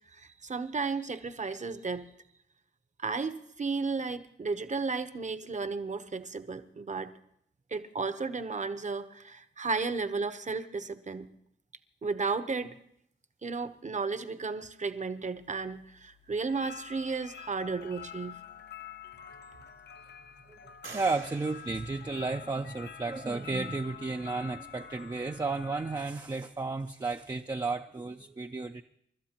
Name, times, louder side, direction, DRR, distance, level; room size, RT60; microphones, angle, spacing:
voice 1, 0.0-2.1 3.0-7.1 7.7-11.3 12.0-12.8 13.4-18.4, right 4 dB, 40° right, 11 dB, 0.9 m, -34 dB
sound 1, 15.4-26.1, left 8 dB, 65° left, 0.6 m, -48 dB
sound 2, 18.6-18.7 19.2-19.9 20.8-22.8, right 4 dB, 90° right, 2.1 m, -50 dB
voice 2, 20.5-28.8, right 3 dB, 20° right, 5 dB, 0.5 m, -33 dB
28.5 x 13.0 x 2.9 m, 0.72 s
wide cardioid pair, 90°, 19 cm